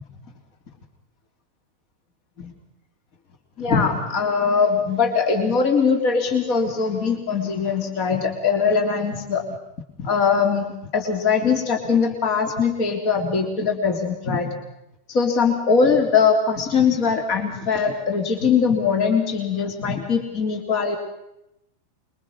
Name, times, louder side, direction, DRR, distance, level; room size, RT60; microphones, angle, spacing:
voice 1, 3.6-9.6 10.0-14.5 15.1-21.0, left 5 dB, 40° left, 5 dB, 3.5 m, -21 dB
26.0 x 23.5 x 5.6 m, 0.84 s
figure-of-eight pair, 90°, 0 cm